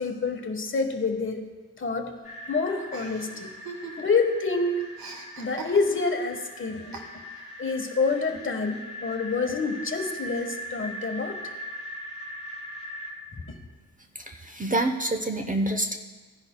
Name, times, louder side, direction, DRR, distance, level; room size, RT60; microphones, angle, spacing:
voice 1, 0.0-1.4 1.8-2.1 2.5-3.5 4.0-4.9 5.4-7.0 7.6-11.4 13.5-13.6, left 4 dB, 35° left, 4 dB, 1.3 m, -27 dB
sound 1, 2.2-13.1, left 1 dB, 20° left, 3.6 m, -40 dB
Chuckle chortle, 2.9-4.3 4.5-6.2 6.9-7.5, right 4 dB, 75° right, 1.7 m, -42 dB
voice 2, 14.3-16.0, right 1 dB, 20° right, 5 dB, 0.7 m, -27 dB
16.5 x 10.5 x 2.2 m, 1.4 s
cardioid pair, 80°, 36 cm